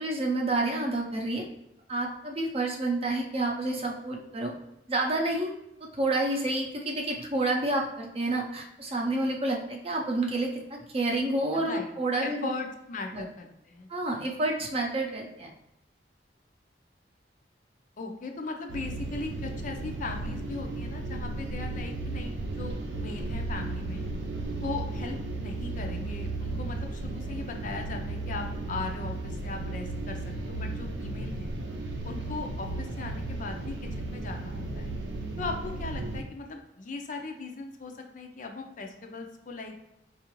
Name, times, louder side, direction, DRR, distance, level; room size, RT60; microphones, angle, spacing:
voice 1, 0.0-1.4 1.9-4.5 4.9-5.5 5.9-12.5 13.1-13.2 13.9-15.5, right 2 dB, 35° right, 0 dB, 0.6 m, -29 dB
voice 2, 11.5-11.9 12.2-13.9 18.0-24.1 24.6-31.5 32.0-34.9 35.4-39.7, left 3 dB, 45° left, 4 dB, 0.5 m, -39 dB
sound 1, 18.7-36.2, right 2 dB, 85° right, 0.6 m, -35 dB
4.6 x 2.5 x 2.9 m, 0.87 s
head